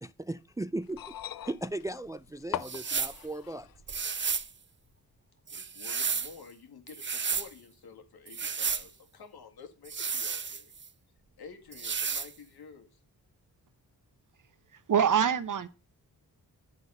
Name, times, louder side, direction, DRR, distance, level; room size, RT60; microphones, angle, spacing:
voice 1, 0.0-3.7, right 1 dB, 10° right, 0.3 m, -37 dB
sound 1, 0.8-3.8 4.9-5.0, left 10 dB, 65° left, 0.7 m, -41 dB
sound 2, 2.6-3.2 3.9-4.5 5.5-6.3 6.9-7.5 8.3-8.9 9.9-10.9 11.7-12.3, right 5 dB, 30° right, 0.7 m, -32 dB
voice 2, 5.5-10.7 11.4-13.0, left 5 dB, 80° left, 2.0 m, -50 dB
voice 3, 14.7-15.7, right 8 dB, 55° right, 1.0 m, -25 dB
10.5 x 4.1 x 5.4 m
cardioid pair, 55°, 38 cm